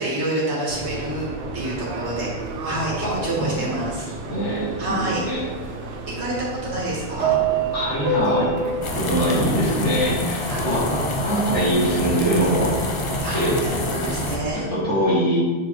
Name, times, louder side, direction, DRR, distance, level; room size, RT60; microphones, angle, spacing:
voice 1, 0.0-2.3 2.6-4.1 4.8-5.3 6.2-7.4 10.5-10.6 13.2-14.7, right 1 dB, 70° right, -6 dB, 2.0 m, -28 dB
Subway metro underground, 0.7-14.5, right 4 dB, 90° right, 1.0 m, -30 dB
voice 2, 3.0-3.8 4.2-5.4 7.7-8.5 8.9-12.8 13.3-13.6 14.5-15.4, equal, 85° left, -8 dB, 2.4 m, -23 dB
sound 1, 8.8-14.4, left 2 dB, 40° left, 0.5 m, -27 dB
7.1 x 4.5 x 3.1 m, 1.5 s
omnidirectional pair, 1.2 m